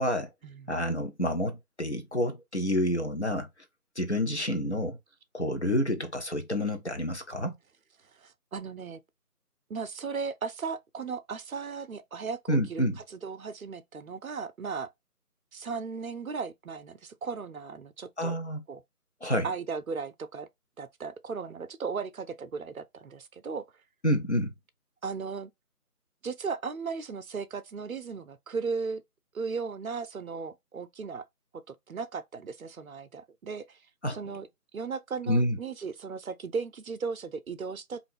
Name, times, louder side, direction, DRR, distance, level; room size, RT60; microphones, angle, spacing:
voice 1, 0.7-3.5 4.0-5.0 5.3-7.6 12.5-13.0 18.2-18.6 19.2-19.5 24.0-24.5 34.0-34.2 35.3-35.6, equal, 50° left, 0.5 m, -28 dB
voice 2, 8.1-9.0 9.7-14.9 15.5-18.4 18.7-18.8 19.4-20.5 20.8-23.6 25.0-25.5 26.2-29.0 29.3-31.2 31.7-33.8 34.1-34.5 34.7-38.0, right 5 dB, 65° right, 0.5 m, -36 dB
2.5 x 2.4 x 3.3 m
figure-of-eight pair, 170°, 46 cm